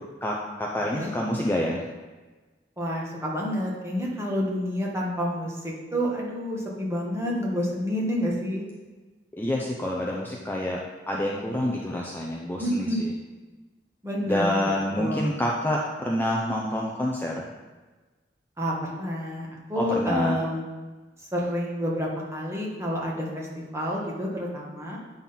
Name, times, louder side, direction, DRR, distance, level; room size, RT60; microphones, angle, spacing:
voice 1, 0.2-1.8 9.4-10.8 11.1-13.1 14.2-17.5 19.8-20.4, left 1 dB, 10° left, -2 dB, 0.6 m, -27 dB
voice 2, 2.8-8.6 12.6-13.0 14.0-14.7 15.0-15.3 18.6-20.6 21.3-25.0, equal, 15° right, -3 dB, 1.6 m, -29 dB
8.8 x 4.0 x 5.7 m, 1.3 s
head